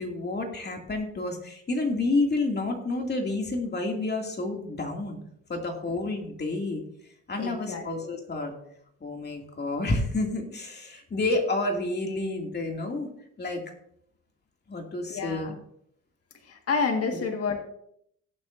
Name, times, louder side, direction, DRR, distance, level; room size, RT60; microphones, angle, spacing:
voice 1, 0.0-5.2 5.5-6.8 7.3-8.6 9.0-13.1 13.4-13.6 14.7-15.5, left 2 dB, 35° left, 2 dB, 2.5 m, -29 dB
voice 2, 7.4-8.1 15.1-15.6 16.4-17.6, left 4 dB, 50° left, 3 dB, 1.8 m, -29 dB
17.5 x 7.6 x 2.7 m, 0.70 s
cardioid pair, 90°, 30 cm